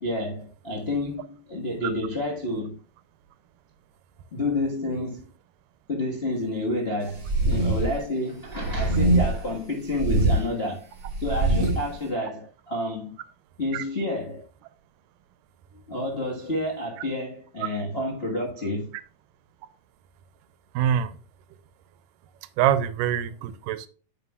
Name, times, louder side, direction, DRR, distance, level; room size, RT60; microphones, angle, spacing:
voice 1, 0.0-2.8 4.3-5.3 5.9-10.9 11.2-13.1 13.6-14.5 15.9-18.9, left 1 dB, 80° left, 0.5 m, -29 dB
sound 1, 7.2-8.0 8.5-9.5 9.9-10.4 11.0-11.9, right 2 dB, 35° right, 2.9 m, -23 dB
voice 2, 20.8-21.1 22.6-23.9, right 10 dB, 90° right, 2.3 m, -24 dB
9.4 x 8.0 x 2.3 m
omnidirectional pair, 3.8 m